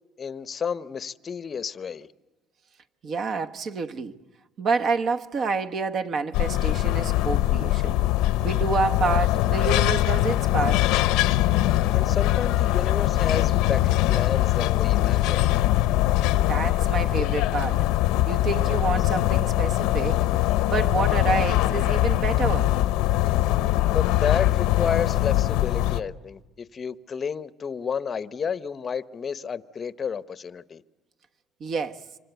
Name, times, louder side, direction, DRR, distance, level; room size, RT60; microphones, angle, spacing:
voice 1, 0.2-2.1 11.9-15.4 23.9-30.8, left 6 dB, 30° left, 0.8 m, -31 dB
voice 2, 3.0-4.1 4.6-7.9 8.4-10.9 16.5-17.8 18.2-20.2 20.6-22.7 31.6-32.0, right 4 dB, 45° right, 1.2 m, -28 dB
sound 1, 6.3-26.0, left 15 dB, 80° left, 0.8 m, -22 dB
26.0 x 25.5 x 8.1 m
cardioid pair, 115°, 0 cm